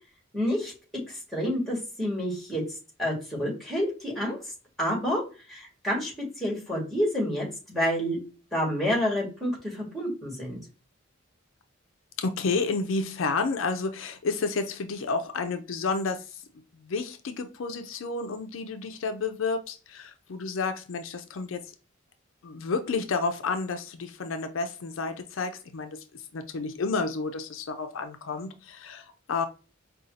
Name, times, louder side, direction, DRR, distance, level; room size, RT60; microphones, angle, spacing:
voice 1, 0.3-0.7 1.1-2.6 3.0-4.4 4.8-5.2 5.5-8.2 8.5-10.6, equal, ahead, 1.8 m, -28 dB
voice 2, 12.2-16.4 16.8-21.6 22.4-29.4, left 4 dB, 70° left, 0.5 m, -31 dB
5.0 x 2.3 x 2.7 m
head